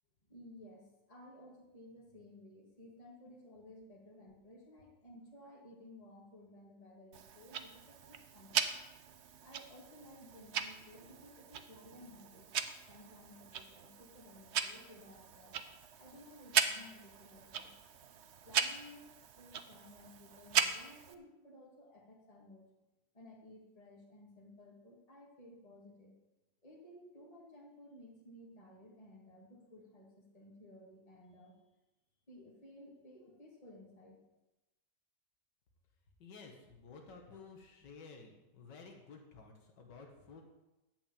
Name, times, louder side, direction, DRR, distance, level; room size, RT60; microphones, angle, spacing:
voice 1, 0.3-8.7 9.4-12.5 12.9-15.6 16.0-17.7 18.4-19.1 19.4-22.7 23.1-26.2 26.6-31.6 32.3-34.2, left 1 dB, 20° left, -4 dB, 2.0 m, -56 dB
Tick-tock, 7.1-21.1, right 7 dB, 55° right, 0.7 m, -39 dB
voice 2, 36.2-40.4, left 4 dB, 80° left, 2 dB, 2.1 m, -53 dB
11.0 x 6.2 x 8.4 m, 1.0 s
omnidirectional pair, 1.9 m